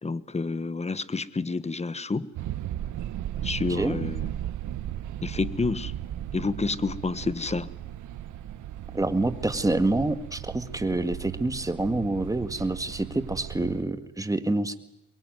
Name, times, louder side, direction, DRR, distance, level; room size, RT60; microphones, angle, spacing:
voice 1, 0.0-2.3 3.4-4.3 5.2-5.9 6.3-7.7, left 3 dB, 20° left, 16 dB, 1.2 m, -29 dB
sound 1, 2.3-13.8, right 12 dB, 80° right, 1.6 m, -36 dB
voice 2, 8.9-14.7, right 2 dB, 10° right, 10 dB, 1.8 m, -27 dB
24.0 x 22.5 x 9.5 m, 0.92 s
cardioid pair, 90°, 30 cm